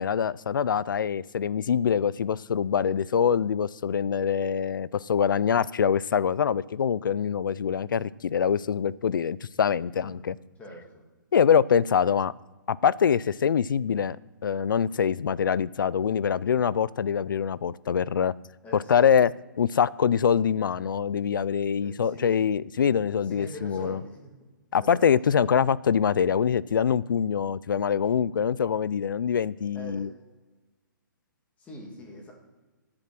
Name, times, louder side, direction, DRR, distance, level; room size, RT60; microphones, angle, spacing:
voice 1, 0.0-10.4 11.3-12.3 12.7-14.2 14.4-18.3 18.7-19.3 19.6-24.0 24.7-30.1, left 7 dB, 80° left, 21 dB, 0.4 m, -24 dB
voice 2, 10.6-11.0 18.6-19.1 21.8-22.4 23.2-24.3 24.8-25.1 29.7-30.1 31.6-32.3, left 1 dB, 15° left, 0 dB, 2.4 m, -43 dB
12.0 x 8.7 x 6.0 m, 1.2 s
hypercardioid pair, 155°, 11 cm